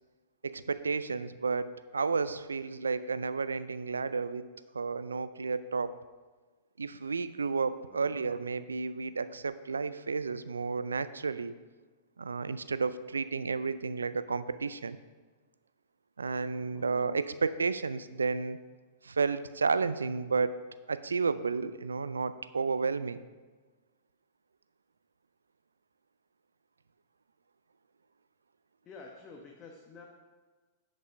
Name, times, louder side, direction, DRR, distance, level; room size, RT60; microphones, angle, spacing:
voice 1, 0.4-4.4 4.7-6.0 6.8-11.5 12.2-15.0 16.2-18.6 19.0-20.6 20.9-23.2, right 4 dB, 90° right, 14 dB, 0.4 m, -32 dB
voice 2, 7.9-8.3 16.6-17.0 28.8-30.1, left 4 dB, 30° left, 0 dB, 1.1 m, -50 dB
10.0 x 5.4 x 4.9 m, 1.3 s
hypercardioid pair, 105°, 0 cm